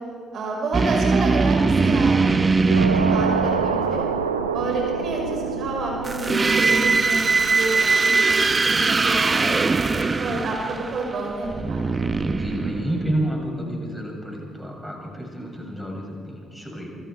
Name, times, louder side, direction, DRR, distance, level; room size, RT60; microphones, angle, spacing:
voice 1, 0.3-4.0 4.5-9.7 10.2-11.8, right 2 dB, 55° right, 0 dB, 5.5 m, -29 dB
sound 1, 0.7-4.0 6.0-13.4, right 4 dB, 30° right, 1.4 m, -21 dB
sound 2, 2.7-8.0, right 6 dB, 85° right, 0.8 m, -27 dB
voice 2, 12.3-16.9, right 1 dB, ahead, -1 dB, 7.9 m, -30 dB
28.0 x 24.5 x 4.9 m, 2.2 s
figure-of-eight pair, 45°, 0 cm